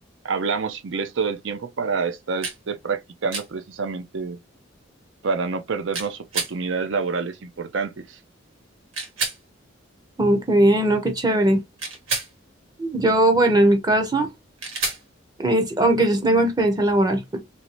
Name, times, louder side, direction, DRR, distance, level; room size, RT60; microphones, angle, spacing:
voice 1, 0.2-4.4 5.2-8.2, right 5 dB, 70° right, 0.5 m, -27 dB
sound 1, 2.4-2.6 3.3-3.5 5.9-6.5 8.9-9.4 11.8-12.3 14.6-15.0, right 3 dB, 85° right, 1.5 m, -28 dB
voice 2, 10.2-11.6 12.8-14.3 15.4-17.2, right 1 dB, 20° right, 0.7 m, -19 dB
3.1 x 2.7 x 2.9 m
head